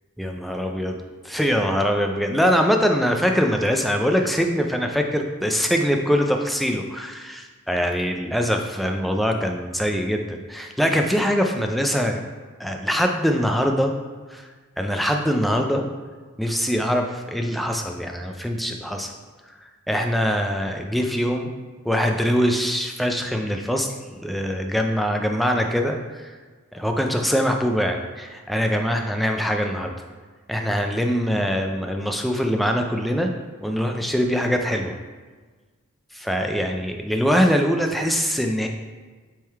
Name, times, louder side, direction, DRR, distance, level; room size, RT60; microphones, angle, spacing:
voice 1, 0.2-1.0 1.2-12.2 12.6-13.9 14.3-14.5 14.8-15.8 16.4-19.1 19.9-21.5 21.8-23.9 24.2-26.4 26.7-29.9 30.5-33.3 33.6-35.0 36.1-38.7, equal, ahead, 3 dB, 0.4 m, -23 dB
7.5 x 3.7 x 4.6 m, 1.4 s
head